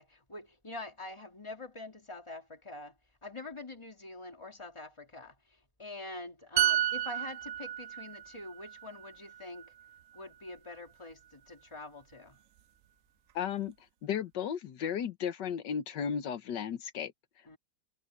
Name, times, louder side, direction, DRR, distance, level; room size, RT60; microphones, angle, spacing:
voice 1, 0.0-9.7 10.1-12.4 17.5-17.6, left 2 dB, 15° left, 2.7 m, -45 dB
sound 1, 6.6-10.2 10.5-10.7, right 11 dB, 70° right, 0.7 m, -32 dB
voice 2, 13.4-13.7 14.0-17.1, left 8 dB, 85° left, 1.7 m, -34 dB
omnidirectional pair, 1.9 m